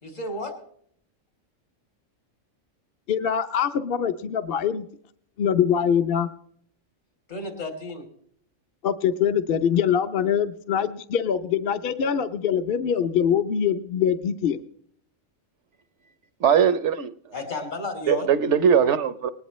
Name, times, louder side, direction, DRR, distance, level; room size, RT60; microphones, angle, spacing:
voice 1, 0.0-0.5 7.3-8.0 17.3-18.3, left 2 dB, 80° left, 3.7 m, -32 dB
voice 2, 3.1-4.8 5.4-6.3 8.8-14.6, left 8 dB, 55° left, 0.8 m, -23 dB
voice 3, 16.4-17.3 18.1-19.3, right 7 dB, 65° right, 1.1 m, -20 dB
20.5 x 18.5 x 3.1 m
omnidirectional pair, 1.3 m